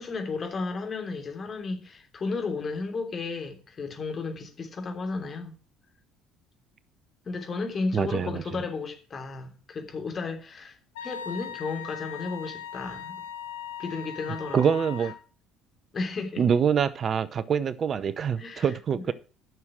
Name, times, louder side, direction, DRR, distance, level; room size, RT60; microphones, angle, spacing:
voice 1, 0.0-5.5 7.2-10.8 11.0-13.2 13.8-14.8 15.9-16.4 18.4-19.1, left 4 dB, 40° left, 3.2 m, -33 dB
voice 2, 7.9-8.4 14.5-15.1 16.4-19.1, right 7 dB, 45° right, 0.7 m, -25 dB
Wind instrument woodwind instrument, 11.0-15.2, left 8 dB, 80° left, 1.2 m, -39 dB
11.0 x 6.5 x 6.1 m
hypercardioid pair, 60°, 0 cm